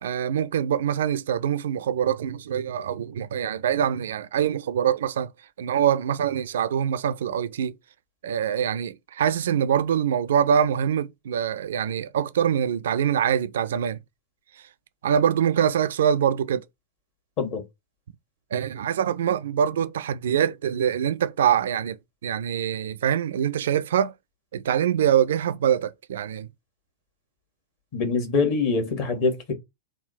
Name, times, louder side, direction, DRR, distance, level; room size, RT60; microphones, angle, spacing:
voice 1, 0.0-5.3 5.6-7.7 8.2-14.0 15.0-16.6 18.5-22.0 22.2-24.1 24.5-26.5, right 9 dB, 60° right, 0.3 m, -24 dB
voice 2, 27.9-29.5, left 4 dB, 45° left, 1.4 m, -24 dB
3.5 x 2.3 x 4.2 m
figure-of-eight pair, 90°, 0 cm